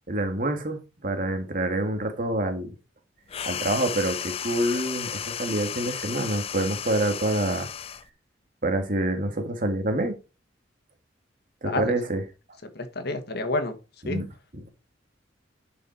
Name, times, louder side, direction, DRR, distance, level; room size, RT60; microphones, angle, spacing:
voice 1, 0.1-2.7 3.4-7.7 8.6-10.2 11.6-12.2 14.0-14.3, right 1 dB, 45° right, 1.8 m, -27 dB
sound 1, 3.3-8.1, left 8 dB, 30° left, 0.4 m, -34 dB
voice 2, 12.6-13.7 14.0-14.2, left 2 dB, 55° left, 1.5 m, -29 dB
11.0 x 5.3 x 4.4 m
head